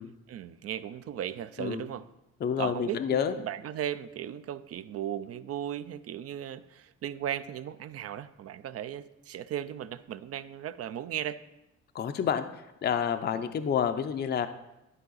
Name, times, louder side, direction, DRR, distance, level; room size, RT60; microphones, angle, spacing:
voice 1, 0.3-2.1 2.6-11.4, right 10 dB, 55° right, 14 dB, 0.4 m, -36 dB
voice 2, 2.4-3.3 11.9-12.4 12.8-14.5, left 8 dB, 35° left, 8 dB, 0.5 m, -28 dB
11.5 x 4.8 x 3.9 m, 0.93 s
cardioid pair, 90°, 30 cm